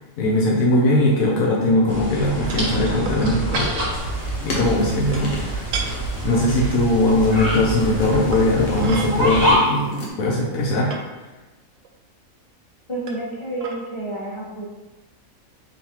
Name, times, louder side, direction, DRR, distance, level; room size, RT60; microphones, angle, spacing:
voice 1, 0.2-3.7 4.4-5.8 6.2-10.9, left 1 dB, 75° left, -3 dB, 1.1 m, -20 dB
sound 1, 1.9-9.5, right 1 dB, 45° right, 1.4 m, -26 dB
sound 2, 2.5-2.7 3.1-3.3 3.5-3.7 5.1-5.4 5.7-5.9 7.1-7.2 8.3-9.1 9.9-10.0 10.4-11.0 11.8-11.9 13.1-13.3 13.6-13.8, right 5 dB, 70° right, 0.9 m, -32 dB
sound 3, 3.9-10.1, left 1 dB, 50° left, 1.0 m, -37 dB
voice 2, 12.9-14.6, right 2 dB, 25° left, -4 dB, 0.8 m, -30 dB
4.1 x 3.8 x 2.9 m, 1.1 s
omnidirectional pair, 1.5 m